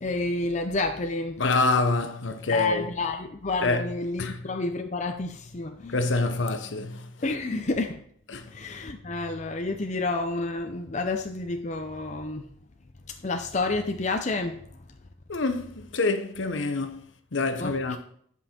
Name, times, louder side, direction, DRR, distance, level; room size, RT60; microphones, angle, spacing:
voice 1, 0.0-1.4 2.5-6.0 7.2-8.0 8.5-12.5 13.2-14.6 17.6-18.0, left 3 dB, 35° left, 0.6 m, -29 dB
voice 2, 1.4-2.9 3.6-3.8 4.2-4.4 5.9-7.1 8.3-8.4 15.3-17.0 17.3-18.0, left 3 dB, 70° left, 0.9 m, -26 dB
10.5 x 5.5 x 4.3 m
head